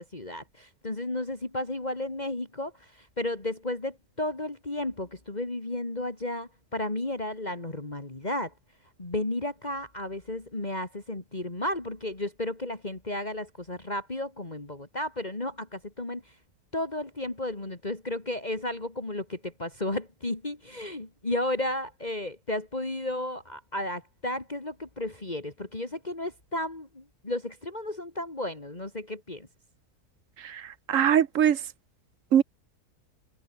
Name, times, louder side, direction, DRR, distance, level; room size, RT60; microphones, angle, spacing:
voice 1, 0.0-8.5 9.0-16.4 16.7-29.5, left 1 dB, 25° left, 3.0 m, -33 dB
voice 2, 30.4-31.6 32.3-32.4, right 9 dB, 60° right, 1.2 m, -22 dB
omnidirectional pair, 1.7 m